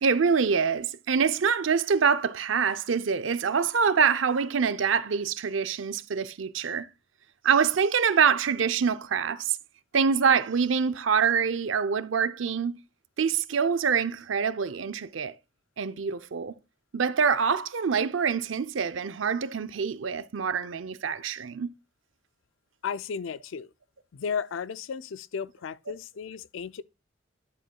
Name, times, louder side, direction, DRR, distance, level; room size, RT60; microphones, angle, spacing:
voice 1, 0.0-6.9 7.4-9.6 9.9-12.7 13.2-15.3 15.8-16.5 16.9-21.7, right 6 dB, 80° right, 0.5 m, -25 dB
voice 2, 22.8-23.7 24.1-26.8, left 6 dB, 85° left, 0.4 m, -34 dB
10.5 x 7.2 x 2.3 m
head